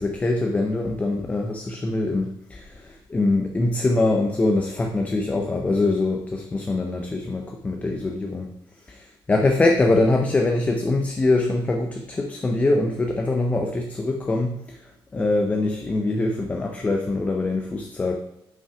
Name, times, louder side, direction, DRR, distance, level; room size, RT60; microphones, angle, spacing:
voice 1, 0.0-8.5 8.9-14.8 15.1-18.2, left 2 dB, 15° left, 3 dB, 0.5 m, -23 dB
5.7 x 5.4 x 4.8 m, 0.85 s
cardioid pair, 180°, 9 cm